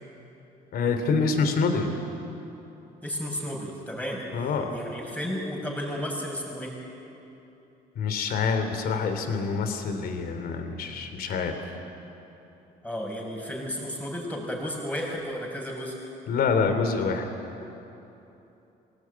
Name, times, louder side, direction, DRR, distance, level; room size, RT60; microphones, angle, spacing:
voice 1, 0.7-1.9 4.3-4.7 7.9-11.6 16.3-17.3, left 5 dB, 60° left, 7 dB, 3.0 m, -26 dB
voice 2, 3.0-4.2 4.7-6.7 12.8-16.0, equal, 10° left, -2 dB, 6.7 m, -33 dB
24.0 x 19.0 x 9.5 m, 3.0 s
cardioid pair, 110°, 17 cm